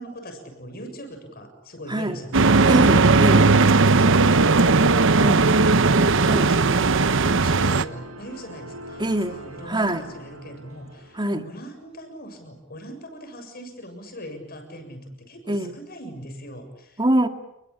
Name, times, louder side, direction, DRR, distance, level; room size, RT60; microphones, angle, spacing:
voice 1, 0.0-2.9 3.9-17.0, equal, 50° left, 7 dB, 7.2 m, -40 dB
voice 2, 1.9-2.2 2.7-3.5 5.2-5.5 6.2-6.5 9.0-9.4 9.7-10.1 11.2-11.5 15.5-15.7 17.0-17.3, right 1 dB, 20° right, 6 dB, 2.3 m, -23 dB
sound 1, 2.3-7.8, right 3 dB, 65° right, 1.0 m, -17 dB
sound 2, 2.8-12.0, right 2 dB, 80° right, 3.5 m, -42 dB
29.5 x 22.0 x 8.7 m, 0.84 s
head